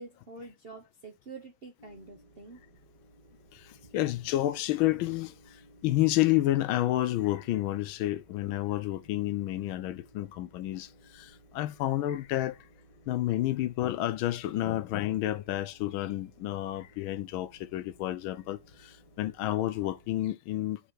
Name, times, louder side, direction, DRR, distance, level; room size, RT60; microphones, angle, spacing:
voice 1, 0.0-2.6 4.2-4.3, right 3 dB, 50° right, 0.6 m, -47 dB
sound 1, 1.8-20.2, right 1 dB, 55° left, 2.3 m, -59 dB
voice 2, 3.5-12.6 13.1-20.8, left 15 dB, 75° left, 1.3 m, -30 dB
5.5 x 5.0 x 6.3 m
omnidirectional pair, 2.4 m